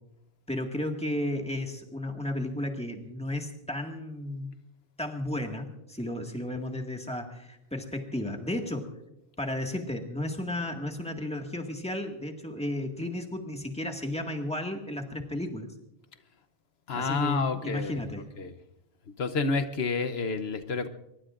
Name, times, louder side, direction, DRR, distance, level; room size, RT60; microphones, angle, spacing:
voice 1, 0.5-4.5 5.0-8.9 9.4-15.7 16.9-18.3, left 1 dB, 5° left, 2 dB, 1.8 m, -33 dB
voice 2, 16.9-18.5 19.2-20.9, left 4 dB, 75° left, 9 dB, 1.1 m, -30 dB
23.5 x 22.0 x 2.5 m, 0.84 s
omnidirectional pair, 1.1 m